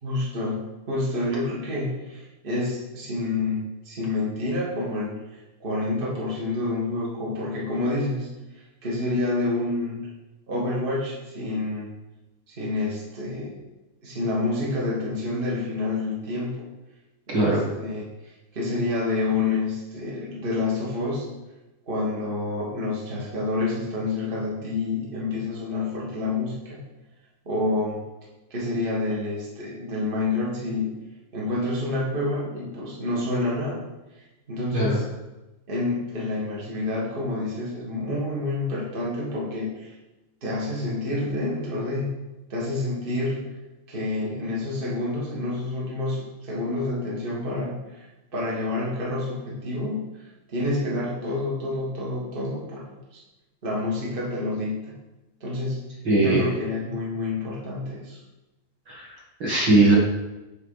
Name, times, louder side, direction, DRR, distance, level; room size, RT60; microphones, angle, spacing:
voice 1, 0.0-8.3 8.8-10.0 10.5-11.9 12.5-13.6 14.0-16.5 17.3-18.0 18.5-21.2 21.9-26.8 27.4-28.0 28.5-30.9 31.3-33.8 34.5-35.0 35.7-39.9 40.4-42.1 42.5-43.4 43.9-48.0 48.3-50.1 50.5-52.8 53.1-53.2 53.6-54.9 55.4-55.8 56.2-58.2, left 2 dB, 70° right, -6 dB, 0.5 m, -28 dB
voice 2, 17.3-17.6 34.7-35.0 56.0-56.5 58.9-60.0, right 2 dB, 45° right, -4 dB, 1.5 m, -20 dB
8.0 x 3.5 x 5.6 m, 1.0 s
omnidirectional pair, 4.1 m